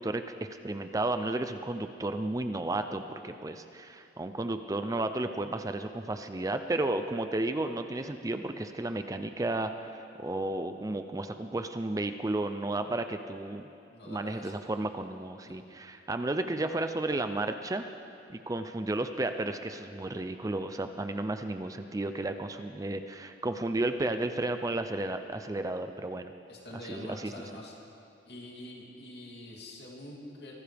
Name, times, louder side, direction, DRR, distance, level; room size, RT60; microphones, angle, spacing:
voice 1, 0.0-13.7 14.1-17.8 18.3-26.3 26.8-27.3, right 2 dB, 20° right, 8 dB, 0.4 m, -33 dB
voice 2, 13.9-14.6 15.4-15.6 26.5-27.7 28.2-30.5, left 1 dB, 60° left, -3 dB, 3.0 m, -45 dB
24.5 x 17.0 x 3.5 m, 2.6 s
head